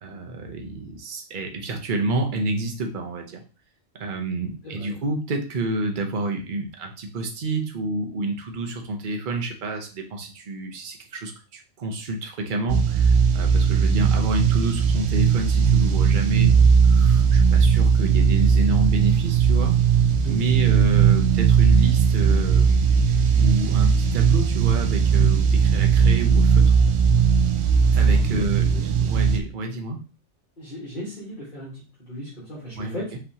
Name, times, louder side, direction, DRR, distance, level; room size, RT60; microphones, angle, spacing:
voice 1, 0.0-3.4 4.0-16.6 16.8-19.8 20.3-22.9 23.4-26.8 27.9-28.7 29.0-30.0 32.8-33.2, right 2 dB, 45° right, 3 dB, 0.9 m, -29 dB
voice 2, 4.6-5.0 20.1-20.5 28.0-28.9 30.6-33.1, equal, 45° left, -7 dB, 1.7 m, -37 dB
sound 1, 12.7-29.4, right 6 dB, 90° right, 1.0 m, -18 dB
5.6 x 3.2 x 2.8 m, 0.35 s
omnidirectional pair, 1.2 m